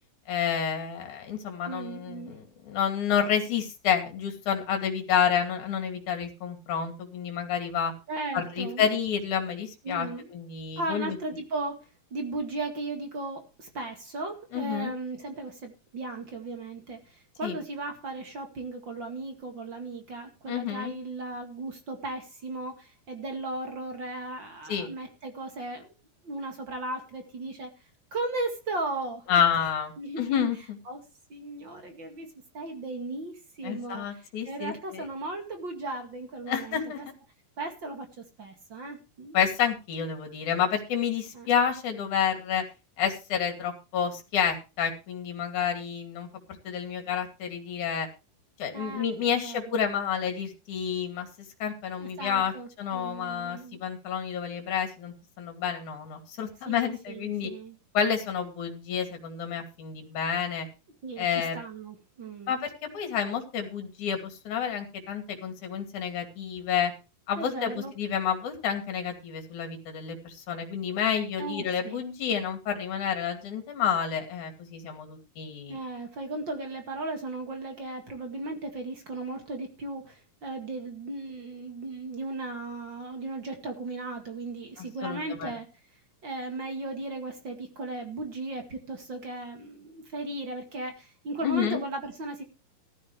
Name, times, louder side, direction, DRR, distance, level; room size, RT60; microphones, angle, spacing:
voice 1, 0.3-7.9 8.3-11.2 14.5-14.9 17.4-17.6 20.5-20.9 24.7-24.9 29.3-30.8 33.6-35.0 36.5-37.0 39.3-42.6 43.0-46.3 46.6-48.1 48.6-51.3 51.6-52.5 52.8-57.5 57.9-60.7 61.2-61.6 62.5-66.9 67.3-75.8 84.8-85.5 91.4-91.8, left 8 dB, 60° left, 4 dB, 3.9 m, -29 dB
voice 2, 1.7-2.4 8.1-8.9 9.8-10.3 10.8-25.9 26.2-27.7 28.1-30.4 30.9-31.0 31.3-32.3 32.5-37.1 37.6-39.4 41.3-41.5 48.7-49.8 51.9-53.8 56.7-57.8 61.0-62.6 67.4-67.9 71.4-72.0 75.7-85.7 86.2-92.4, right 2 dB, 40° right, 5 dB, 2.3 m, -36 dB
14.5 x 14.0 x 3.3 m, 0.30 s
omnidirectional pair, 4.1 m